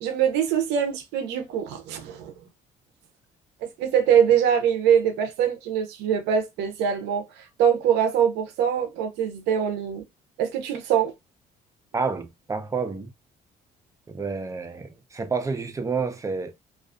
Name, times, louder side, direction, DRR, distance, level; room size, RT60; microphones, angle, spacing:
voice 1, 0.0-2.3 3.6-10.0 10.4-11.1, right 8 dB, 90° right, 0.6 m, -23 dB
voice 2, 11.9-13.1 14.1-16.5, right 4 dB, 20° right, 0.5 m, -29 dB
2.4 x 2.3 x 2.4 m
cardioid pair, 110°, 17 cm